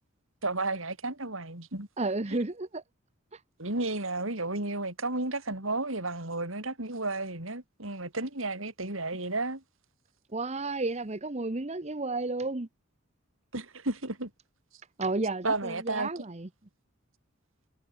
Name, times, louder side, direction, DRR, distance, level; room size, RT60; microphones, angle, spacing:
voice 1, 0.4-1.9 3.6-9.6 13.5-14.3 15.4-16.1, right 2 dB, 70° right, 5.3 m, -32 dB
voice 2, 2.0-2.8 3.3-3.4 10.3-12.7 15.0-16.5, right 2 dB, 30° right, 1.1 m, -32 dB
head